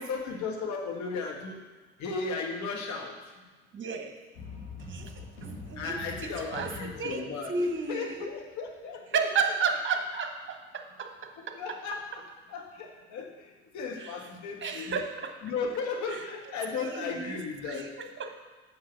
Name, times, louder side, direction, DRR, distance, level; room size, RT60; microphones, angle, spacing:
voice 1, 0.0-1.6 2.0-3.1 5.8-9.5 11.5-12.2 12.5-15.0 15.4-17.9, left 4 dB, 55° left, 2 dB, 1.6 m, -35 dB
voice 2, 3.7-4.2 4.9-6.0 6.2-8.3 9.1-11.6 14.0-14.3 14.6-15.3 16.1-16.2 16.7-17.4 17.6-18.4, right 5 dB, 35° right, 5 dB, 1.2 m, -33 dB
sound 1, 4.3-8.4, left 2 dB, 80° left, 2.1 m, -44 dB
7.7 x 5.5 x 5.6 m, 1.3 s
hypercardioid pair, 55°, 34 cm